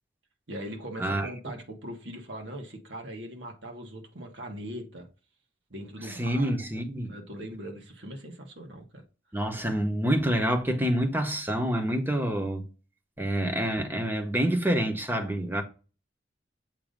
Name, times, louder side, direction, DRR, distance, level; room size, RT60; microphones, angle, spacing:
voice 1, 0.5-5.1 5.7-6.6 7.1-9.0, right 1 dB, 70° right, 1.5 m, -40 dB
voice 2, 6.0-7.1 9.3-12.7 13.2-15.6, right 1 dB, 10° right, 0.9 m, -27 dB
7.3 x 2.7 x 5.1 m
head